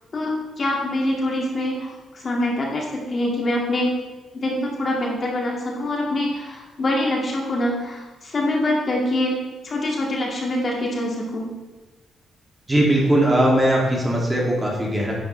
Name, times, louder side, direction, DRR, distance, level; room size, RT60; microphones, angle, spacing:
voice 1, 0.1-3.9 4.3-9.4 9.6-11.5, left 1 dB, 40° left, -2 dB, 2.2 m, -24 dB
voice 2, 12.7-15.1, right 1 dB, 15° right, -3 dB, 2.5 m, -19 dB
10.5 x 9.2 x 3.3 m, 1.2 s
cardioid pair, 115°, 0 cm